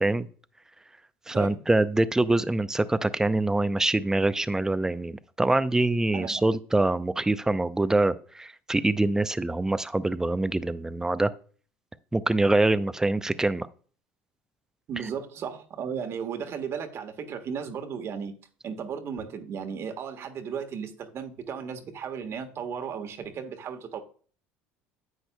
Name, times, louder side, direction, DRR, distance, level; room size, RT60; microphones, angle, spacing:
voice 1, 1.3-11.3 12.1-13.7, right 2 dB, 10° right, 0.6 m, -24 dB
voice 2, 14.9-18.3 18.6-24.0, right 7 dB, 50° right, 1.4 m, -35 dB
10.5 x 7.9 x 2.2 m
hypercardioid pair, 80°, 6 cm